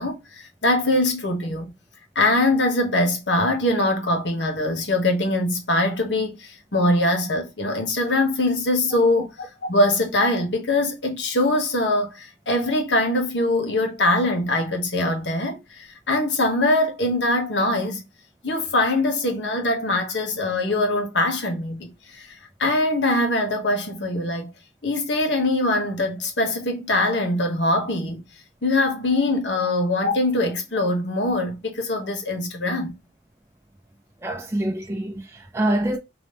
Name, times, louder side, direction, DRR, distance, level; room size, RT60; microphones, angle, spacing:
voice 1, 0.0-1.7 2.1-18.0 18.4-22.3 22.6-24.5 24.8-28.2 28.6-32.9, left 1 dB, 85° left, 1.3 m, -22 dB
voice 2, 34.2-36.0, right 1 dB, 15° right, 0.4 m, -25 dB
4.0 x 3.0 x 3.4 m
head